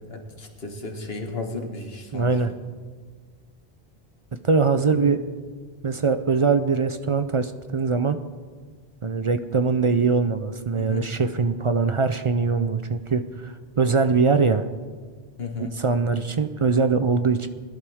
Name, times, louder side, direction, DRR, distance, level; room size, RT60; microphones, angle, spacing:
voice 1, 0.1-2.3 4.9-5.2 10.7-11.1 15.4-15.7, left 3 dB, 70° left, 3 dB, 1.8 m, -34 dB
voice 2, 2.1-2.5 4.4-5.2 5.8-8.2 9.0-14.7 15.6-17.5, right 4 dB, 40° right, 10 dB, 0.5 m, -22 dB
22.0 x 11.5 x 3.5 m, 1.5 s
omnidirectional pair, 1.1 m